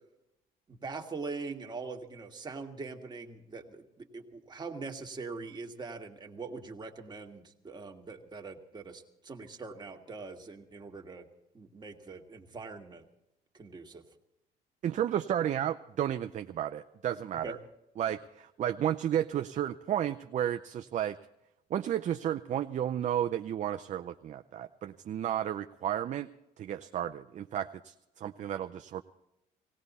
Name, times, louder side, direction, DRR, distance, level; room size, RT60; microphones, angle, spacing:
voice 1, 0.7-11.3 11.5-13.0 13.5-14.0 17.4-17.6, right 4 dB, 25° right, 2 dB, 1.8 m, -42 dB
voice 2, 14.8-17.6 18.0-21.2 21.7-26.3 26.6-29.0, right 10 dB, 45° right, 8 dB, 0.5 m, -32 dB
19.0 x 17.0 x 4.2 m, 0.88 s
cardioid pair, 110°, 17 cm